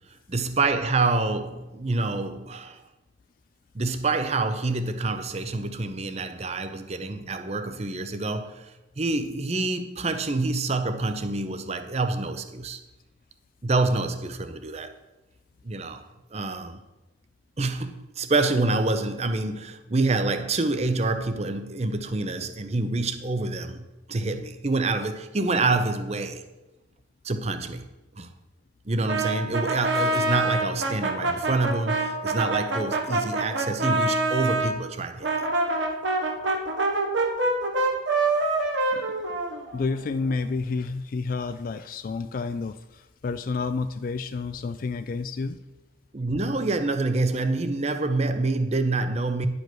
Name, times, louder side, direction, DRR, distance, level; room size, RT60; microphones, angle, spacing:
voice 1, 0.3-2.8 3.7-12.8 13.6-14.9 15.6-16.0 16.3-16.8 17.6-26.4 27.2-27.8 28.2-28.3 28.9-35.3 46.1-49.5, right 3 dB, 35° right, 0.6 m, -27 dB
Brass instrument, 29.1-34.7 35.2-40.0, right 2 dB, 75° right, 1.3 m, -25 dB
voice 2, 39.7-45.6, left 4 dB, 45° left, 0.3 m, -30 dB
10.5 x 5.2 x 6.1 m
head